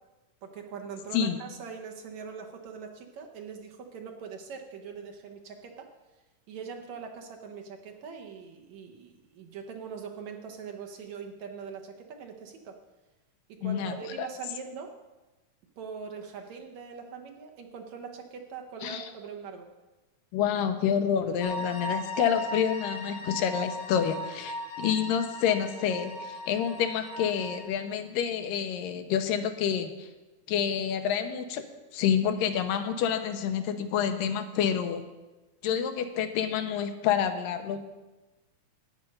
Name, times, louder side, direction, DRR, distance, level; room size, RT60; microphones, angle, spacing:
voice 1, 0.4-5.9 6.5-12.8 13.5-14.9 15.8-19.7, right 6 dB, 70° right, 2 dB, 2.0 m, -42 dB
voice 2, 13.6-14.3 18.8-19.0 20.3-30.1 30.5-31.6 31.9-35.0 35.6-37.8, left 8 dB, 85° left, 7 dB, 2.5 m, -28 dB
sound 1, 21.4-27.7, left 1 dB, 65° left, 1.0 m, -38 dB
11.5 x 9.1 x 5.4 m, 1.1 s
omnidirectional pair, 3.8 m